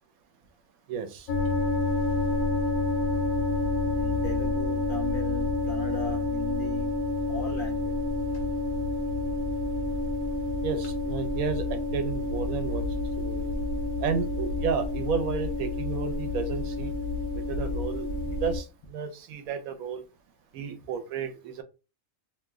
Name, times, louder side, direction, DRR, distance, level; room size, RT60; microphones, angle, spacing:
voice 1, 0.9-1.3 10.6-12.9 13.2-13.5 14.0-16.9 17.5-20.0 20.5-21.6, right 6 dB, 85° right, 9 dB, 1.0 m, -32 dB
sound 1, 1.3-18.6, left 3 dB, 85° left, 1.1 m, -29 dB
voice 2, 4.0-6.9 7.3-7.9, left 4 dB, 60° left, 1 dB, 0.6 m, -37 dB
2.8 x 2.0 x 3.5 m, 0.31 s
omnidirectional pair, 1.4 m